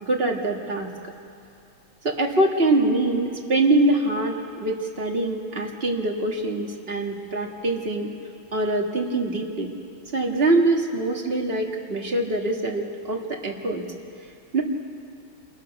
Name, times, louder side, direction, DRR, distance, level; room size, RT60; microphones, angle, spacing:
voice 1, 0.0-0.9 2.0-8.1 8.5-9.7 10.1-13.8 14.5-14.6, right 2 dB, 30° right, 0 dB, 2.1 m, -24 dB
27.5 x 21.5 x 6.0 m, 2.5 s
omnidirectional pair, 2.1 m